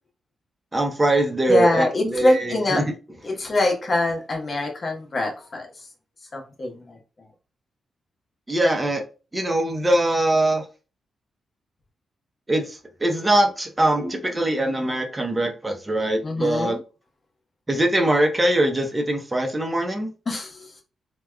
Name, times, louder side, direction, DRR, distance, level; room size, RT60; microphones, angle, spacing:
voice 1, 0.7-2.9 8.5-9.0 9.3-10.6 12.5-16.8 17.7-20.1, right 1 dB, 20° right, 0.7 m, -22 dB
voice 2, 1.5-2.8 3.2-5.9 6.3-7.0 16.2-16.8 20.3-20.7, left 1 dB, 45° left, 1.0 m, -24 dB
3.3 x 2.3 x 2.3 m
cardioid pair, 60°, 0 cm